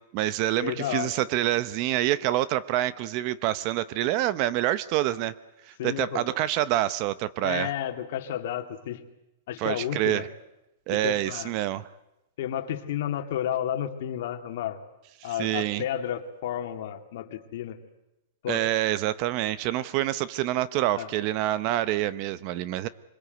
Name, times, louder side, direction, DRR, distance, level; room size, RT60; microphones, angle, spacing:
voice 1, 0.0-5.3 5.7-7.7 9.6-10.3 10.9-11.9 15.2-15.8 18.5-22.9, right 14 dB, 40° right, 16 dB, 0.9 m, -27 dB
voice 2, 0.6-1.1 5.8-6.2 7.4-9.0 9.5-10.3 10.9-11.5 12.4-14.8 15.2-17.8 18.4-18.7 21.0-21.1, left 10 dB, 60° left, 6 dB, 2.5 m, -31 dB
25.0 x 22.5 x 8.1 m, 0.92 s
supercardioid pair, 155°, 0 cm